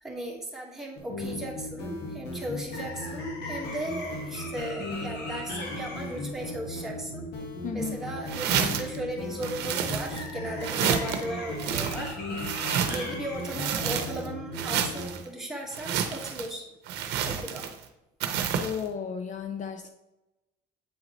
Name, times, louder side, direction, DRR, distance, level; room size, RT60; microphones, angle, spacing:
voice 1, 0.0-7.2 7.7-12.2 12.9-16.7 17.2-17.7, right 1 dB, ahead, -3 dB, 1.6 m, -36 dB
sound 1, 1.0-15.1, left 2 dB, 75° left, 1.6 m, -36 dB
voice 2, 7.6-8.0 18.6-19.9, left 6 dB, 45° left, 7 dB, 0.5 m, -33 dB
sound 2, 8.3-9.0 9.4-10.3 10.6-11.2 11.6-13.1 13.4-14.3 14.5-15.2 15.7-16.5 16.9-17.8 18.2-18.8, right 8 dB, 85° right, 0.7 m, -30 dB
8.5 x 3.8 x 3.1 m, 0.95 s
cardioid pair, 110°, 17 cm